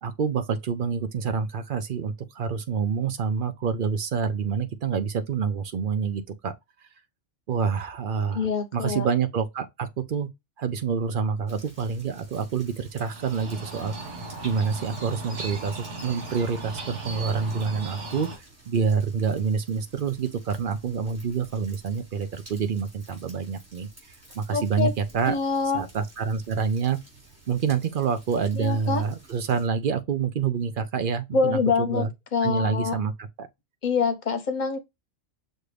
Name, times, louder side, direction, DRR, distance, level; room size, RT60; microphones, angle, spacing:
voice 1, 0.0-6.5 7.5-8.5 8.7-10.3 10.6-13.9 14.4-18.3 18.7-23.9 24.3-25.4 25.7-27.0 27.5-32.1 32.4-33.5, right 6 dB, 55° right, 0.7 m, -27 dB
voice 2, 8.3-9.1 24.5-24.9 25.3-25.9 28.5-29.0 31.3-33.0 33.8-34.8, left 5 dB, 45° left, 0.9 m, -25 dB
sound 1, 11.5-29.7, right 1 dB, 40° right, 3.2 m, -52 dB
sound 2, 13.0-18.4, right 2 dB, 80° right, 1.9 m, -37 dB
6.3 x 2.6 x 3.3 m
omnidirectional pair, 1.2 m